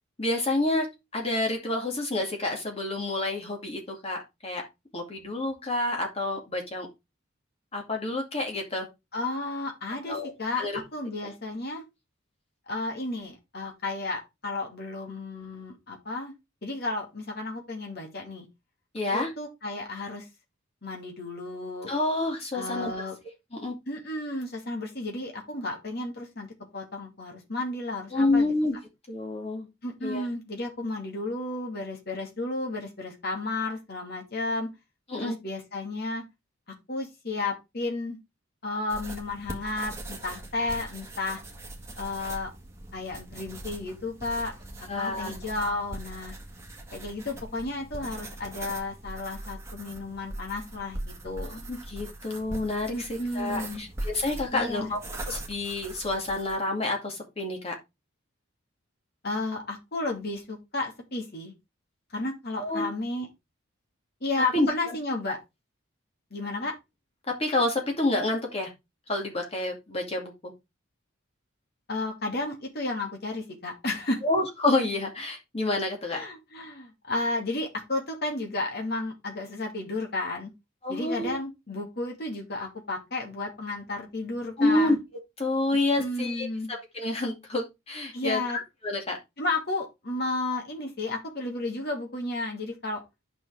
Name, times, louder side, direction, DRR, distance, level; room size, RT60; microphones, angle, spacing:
voice 1, 0.2-0.9 1.1-4.6 4.9-6.9 7.7-8.9 10.1-10.3 10.6-10.7 18.9-19.3 21.9-22.9 23.5-23.8 28.1-28.8 29.1-29.7 30.0-30.2 35.1-35.4 44.9-45.3 51.5-55.0 55.3-57.7 62.6-62.9 64.5-64.7 67.3-68.7 69.1-70.5 74.2-76.2 80.8-81.3 84.6-85.0 85.4-88.4 88.8-89.2, left 2 dB, 30° left, 2.4 m, -28 dB
voice 2, 9.1-11.8 12.7-16.3 16.6-18.5 19.1-20.3 20.8-21.9 22.5-23.2 23.9-26.5 26.7-28.5 29.8-34.7 35.2-36.2 36.9-38.2 38.6-41.4 42.0-42.5 42.9-44.5 44.8-46.3 46.9-51.6 52.9-53.8 54.5-54.9 59.2-61.5 62.1-63.3 64.2-65.4 66.3-66.7 71.9-74.2 76.1-80.5 80.9-84.9 86.0-86.7 88.1-88.6 89.4-93.0, left 2 dB, 50° left, 2.4 m, -33 dB
sound 1, 38.9-56.6, right 2 dB, 15° right, 1.7 m, -41 dB
8.8 x 6.2 x 3.5 m
head